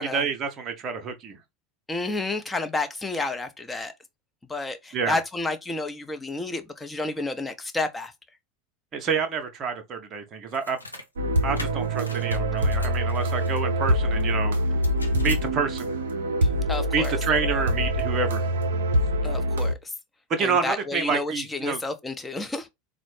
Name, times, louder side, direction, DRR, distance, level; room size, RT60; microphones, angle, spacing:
voice 1, 0.0-1.4 4.9-5.2 8.9-10.8 11.4-14.6 15.2-15.9 16.9-18.4 20.3-21.8, right 5 dB, 35° right, 0.7 m, -28 dB
voice 2, 1.9-3.9 4.5-8.1 16.4-17.2 19.2-19.8 20.4-22.7, left 2 dB, 10° left, 0.7 m, -30 dB
sound 1, 10.5-11.1 11.6-13.5 14.5-15.5, left 2 dB, 90° left, 0.6 m, -41 dB
sound 2, 11.2-19.7, equal, 70° right, 0.5 m, -25 dB
4.0 x 2.1 x 3.2 m
figure-of-eight pair, 80°, 0 cm